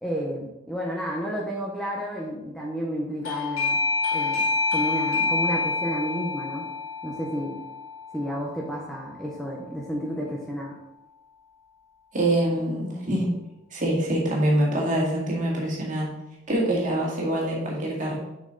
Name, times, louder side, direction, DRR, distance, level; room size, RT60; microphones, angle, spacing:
voice 1, 0.0-3.8 4.1-4.5 4.7-6.7 7.0-7.6 8.1-10.8, equal, ahead, -3 dB, 0.8 m, -31 dB
Doorbell, 3.2-9.7, left 4 dB, 75° left, 1.3 m, -28 dB
voice 2, 12.1-13.3 13.7-16.1 16.5-18.2, right 1 dB, 35° right, -3 dB, 2.0 m, -25 dB
7.1 x 5.4 x 3.9 m, 0.91 s
head